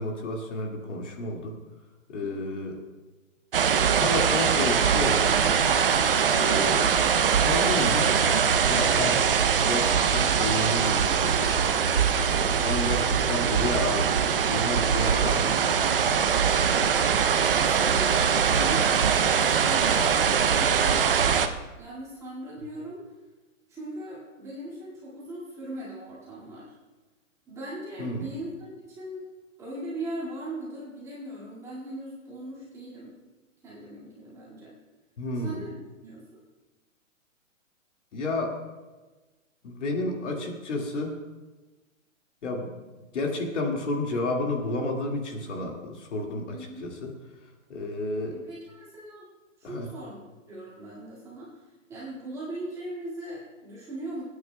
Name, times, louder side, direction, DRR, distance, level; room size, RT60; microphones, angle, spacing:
voice 1, 0.0-1.5 2.1-2.8 3.9-5.3 6.2-6.9 7.4-8.3 8.6-11.6 12.3-15.8 28.0-28.3 35.2-35.6 38.1-38.6 39.6-41.2 42.4-42.8 43.1-47.1 47.7-48.4 49.6-49.9, left 2 dB, 60° left, 1 dB, 2.1 m, -31 dB
voice 2, 2.2-2.6 17.5-19.0 19.4-21.4 21.8-23.0 23.7-26.6 27.5-29.2 29.6-33.2 33.6-34.7 35.4-35.7 36.0-36.2 46.5-46.9 48.3-49.3 49.7-51.5 51.9-54.2, right 1 dB, 5° right, -8 dB, 1.9 m, -39 dB
sound 1, 3.5-21.5, right 7 dB, 45° right, 0.6 m, -22 dB
23.5 x 9.5 x 2.2 m, 1.2 s
hypercardioid pair, 170°, 40 cm